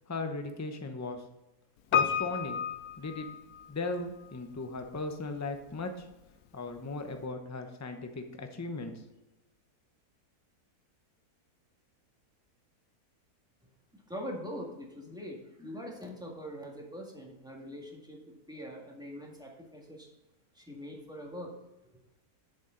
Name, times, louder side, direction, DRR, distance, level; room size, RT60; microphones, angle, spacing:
voice 1, 0.1-1.2 1.9-2.6 3.0-3.3 3.7-6.1 6.5-9.0, left 3 dB, 20° left, 6 dB, 0.5 m, -37 dB
Piano, 1.9-4.0 4.2-4.3, left 8 dB, 80° left, 1.2 m, -31 dB
voice 2, 13.9-20.1 20.5-21.5 21.8-21.9, equal, 5° right, -1 dB, 1.6 m, -43 dB
8.1 x 7.0 x 3.9 m, 0.98 s
omnidirectional pair, 1.6 m